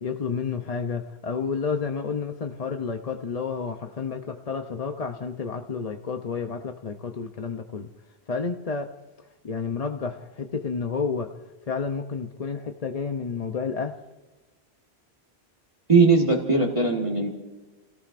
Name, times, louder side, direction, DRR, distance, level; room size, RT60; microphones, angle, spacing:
voice 1, 0.0-7.9 8.3-8.9 9.4-11.3 11.7-13.9, left 5 dB, 40° left, 5 dB, 0.7 m, -30 dB
voice 2, 15.9-17.3, right 4 dB, 30° right, -3 dB, 1.7 m, -19 dB
29.5 x 18.0 x 2.6 m, 1.1 s
omnidirectional pair, 1.1 m